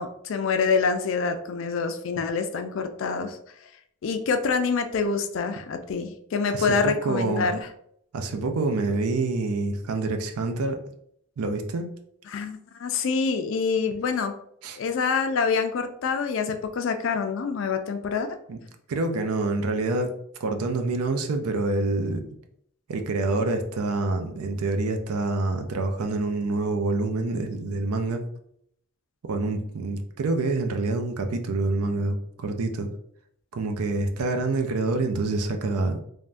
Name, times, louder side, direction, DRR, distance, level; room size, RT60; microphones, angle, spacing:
voice 1, 0.0-3.4 4.0-7.7 12.3-14.3 14.8-18.4, left 5 dB, 60° left, 7 dB, 0.3 m, -26 dB
voice 2, 6.5-7.5 8.1-10.8 11.4-11.9 14.6-14.8 18.5-18.6 18.9-20.1 20.4-22.2 22.9-28.2 29.2-32.9 33.5-36.0, right 2 dB, 90° right, 6 dB, 0.5 m, -26 dB
3.3 x 2.1 x 2.5 m, 0.69 s
head